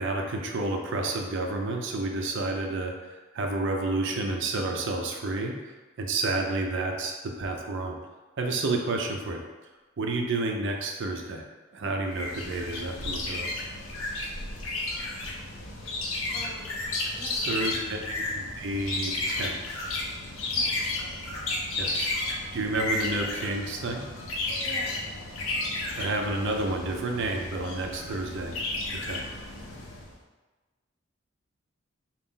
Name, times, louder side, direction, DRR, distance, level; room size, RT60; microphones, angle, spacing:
voice 1, 0.0-5.6 6.0-8.0 8.4-9.4 10.0-11.4 11.7-13.5 17.2-18.0 18.3-19.8 21.8-22.1 22.5-24.0 26.0-28.5 29.0-29.2, right 2 dB, 60° right, 2 dB, 0.5 m, -30 dB
sound 1, 12.1-30.1, left 2 dB, 90° left, 0.7 m, -33 dB
voice 2, 16.3-16.9 17.1-18.1 20.5-20.8 24.6-25.0, right 1 dB, 25° left, -2 dB, 0.6 m, -45 dB
3.9 x 2.4 x 3.7 m, 1.2 s
head